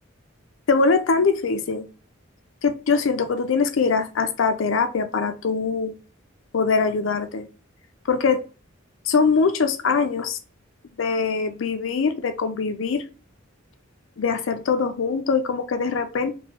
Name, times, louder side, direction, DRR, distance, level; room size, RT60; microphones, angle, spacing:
voice 1, 0.7-1.9 2.6-5.9 6.5-7.5 8.1-8.4 9.1-10.4 11.0-13.0 14.2-16.3, left 4 dB, 65° left, 0.4 m, -22 dB
3.0 x 2.2 x 2.9 m
head